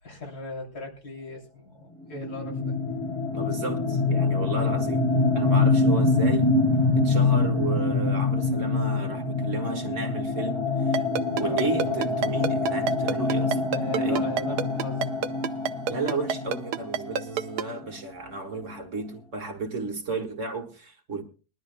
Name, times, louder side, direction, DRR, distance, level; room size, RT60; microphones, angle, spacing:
voice 1, 0.0-2.8 11.0-11.1 11.4-12.0 13.7-15.1, left 3 dB, 70° left, 3.6 m, -38 dB
sound 1, 2.2-17.7, left 3 dB, 20° left, 1.6 m, -25 dB
voice 2, 3.3-5.1 5.3-6.5 7.0-11.1 11.4-14.3 15.9-21.2, right 3 dB, 50° right, 2.1 m, -34 dB
Ringtone, 10.9-17.6, right 8 dB, 85° right, 1.3 m, -27 dB
22.5 x 12.0 x 2.2 m
omnidirectional pair, 1.7 m